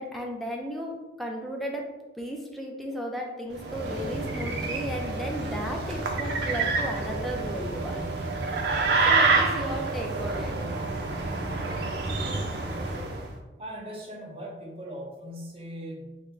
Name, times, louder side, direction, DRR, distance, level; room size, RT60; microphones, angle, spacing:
voice 1, 0.0-1.9 2.2-8.0 9.0-10.6, equal, ahead, -1 dB, 0.4 m, -34 dB
sound 1, 3.5-13.3, right 3 dB, 70° right, 0.5 m, -28 dB
voice 2, 13.6-16.2, equal, 30° right, -2 dB, 0.7 m, -39 dB
3.7 x 2.1 x 3.2 m, 1.1 s
head